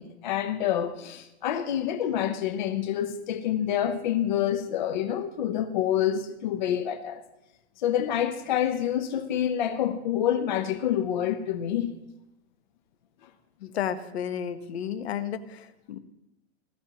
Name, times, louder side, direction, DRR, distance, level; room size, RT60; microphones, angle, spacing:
voice 1, 0.0-7.2 7.8-11.9, left 10 dB, 40° left, 0.7 m, -27 dB
voice 2, 13.6-15.4 15.9-16.0, left 9 dB, 65° left, 1.1 m, -31 dB
20.0 x 12.5 x 2.9 m
supercardioid pair, 175°, 35 cm